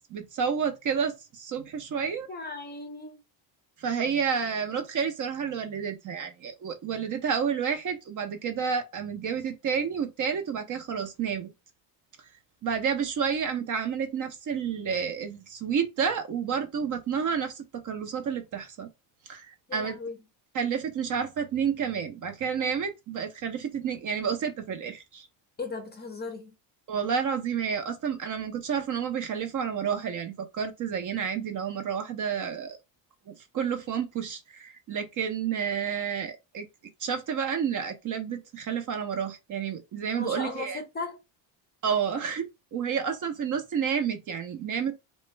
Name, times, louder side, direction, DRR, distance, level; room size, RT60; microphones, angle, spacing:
voice 1, 0.1-2.3 3.8-11.5 12.6-18.9 19.3-20.0 20.5-25.3 26.9-32.8 33.3-36.7 37.0-40.8 41.8-42.4 42.7-44.9, right 7 dB, 40° right, 0.6 m, -30 dB
voice 2, 2.3-3.2 19.7-20.2 25.6-26.5 40.2-41.2, left 3 dB, 20° left, 0.5 m, -37 dB
3.1 x 2.2 x 3.1 m
cardioid pair, 135°, 48 cm